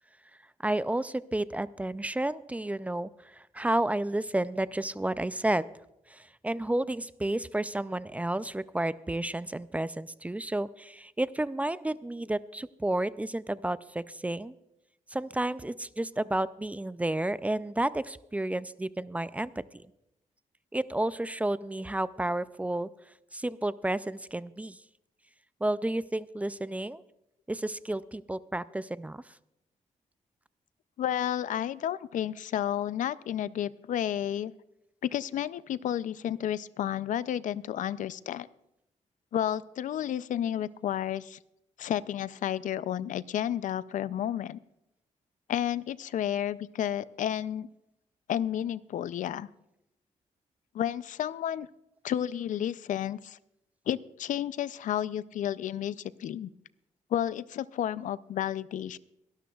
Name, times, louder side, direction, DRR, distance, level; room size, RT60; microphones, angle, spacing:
voice 1, 0.6-5.7 6.1-14.5 15.1-19.6 20.7-22.9 23.3-24.8 25.6-27.0 27.5-29.2, right 1 dB, 10° right, 16 dB, 0.3 m, -31 dB
voice 2, 31.0-34.5 35.0-38.5 39.3-41.4 41.8-44.6 45.5-47.7 48.3-49.5 50.7-51.7 52.0-53.4 53.9-56.5 57.1-59.0, left 10 dB, 75° left, 17 dB, 0.4 m, -31 dB
22.5 x 12.0 x 2.4 m, 0.85 s
cardioid pair, 105°, 13 cm